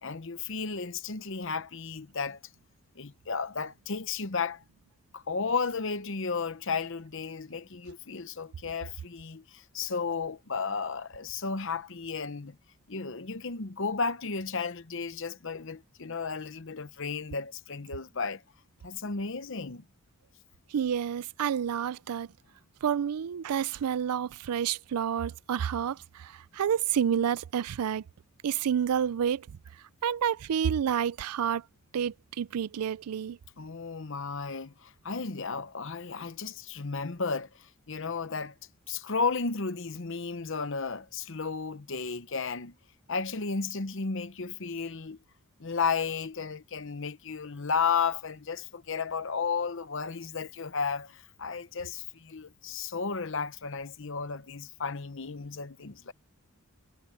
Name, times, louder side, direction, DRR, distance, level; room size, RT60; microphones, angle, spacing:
voice 1, 0.0-2.4 3.0-4.6 5.1-12.6 12.9-18.4 18.8-19.8 33.6-38.5 38.9-42.8 43.1-45.2 45.6-56.1, left 5 dB, 60° left, 0.9 m, -33 dB
voice 2, 20.7-22.3 22.8-28.0 28.4-29.5 30.0-31.6 31.9-33.4, right 8 dB, 85° right, 0.4 m, -29 dB
head